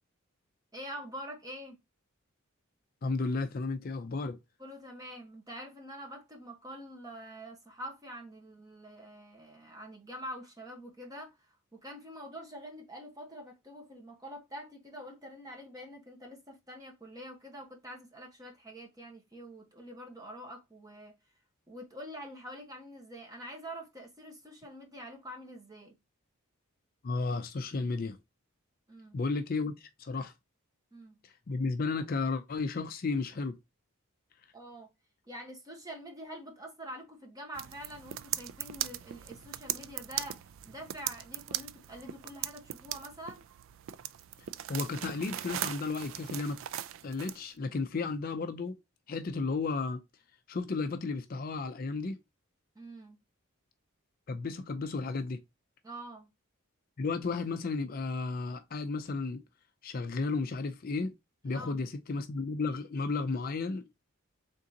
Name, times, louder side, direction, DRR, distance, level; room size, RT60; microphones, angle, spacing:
voice 1, 0.7-1.8 4.6-21.1 21.7-26.0 28.9-29.2 30.9-31.2 34.5-34.9 35.3-43.4 52.7-53.2 55.8-56.3 61.5-61.8, equal, 15° right, 1.1 m, -46 dB
voice 2, 3.0-4.4 27.0-28.2 29.1-30.3 31.2-33.6 44.7-46.6 47.0-48.8 49.1-50.0 50.5-52.2 54.3-55.4 57.0-59.4 59.8-61.1 61.4-63.9, left 3 dB, 45° left, 0.4 m, -33 dB
sound 1, 37.6-47.4, right 12 dB, 65° right, 0.3 m, -39 dB
3.8 x 3.6 x 2.8 m
head